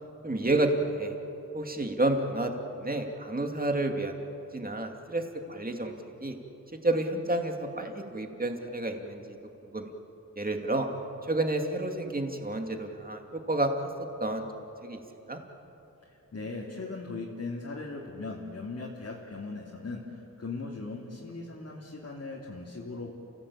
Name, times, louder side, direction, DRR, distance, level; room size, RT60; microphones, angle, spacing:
voice 1, 0.2-1.1 1.5-2.5 2.8-4.2 4.5-5.2 5.5-5.9 6.2-6.3 6.8-9.4 9.7-9.9 10.4-10.9 11.2-13.7 14.2-14.4 14.8-15.0 15.3-15.4, right 2 dB, 25° right, 3 dB, 2.5 m, -30 dB
voice 2, 16.0-23.1, left 3 dB, 50° left, -3 dB, 3.0 m, -39 dB
30.0 x 16.0 x 8.7 m, 2.9 s
wide cardioid pair, 85°, 32 cm